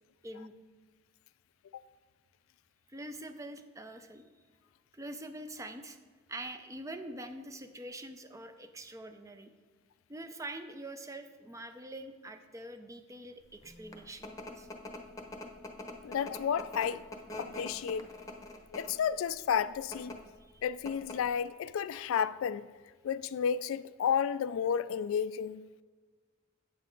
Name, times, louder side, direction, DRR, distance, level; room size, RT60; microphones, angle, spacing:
voice 1, 2.9-4.2 4.9-6.0 6.3-9.5 10.1-14.7 20.4-20.6, right 1 dB, 15° right, 0.5 m, -44 dB
sound 1, 13.6-19.1 19.8-20.2 20.5-20.6 20.9-21.3, left 1 dB, 15° left, 0.9 m, -43 dB
voice 2, 16.0-17.0 17.4-18.1 18.7-20.1 20.6-22.7 23.0-25.7, left 7 dB, 70° left, 0.3 m, -32 dB
9.1 x 7.6 x 3.8 m
head